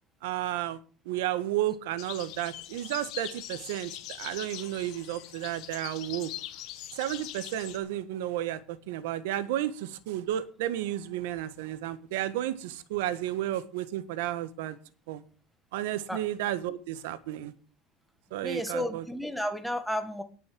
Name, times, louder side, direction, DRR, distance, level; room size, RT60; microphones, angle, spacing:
voice 1, 0.2-0.8 1.0-3.9 4.2-6.3 6.9-14.8 15.1-15.2 15.7-17.5 18.3-19.0, right 13 dB, 90° right, 1.4 m, -32 dB
sound 1, 2.0-7.8, left 13 dB, 55° left, 1.6 m, -42 dB
voice 2, 18.4-20.2, equal, ahead, 1.5 m, -32 dB
18.5 x 6.4 x 6.2 m
cardioid pair, 155°, 0 cm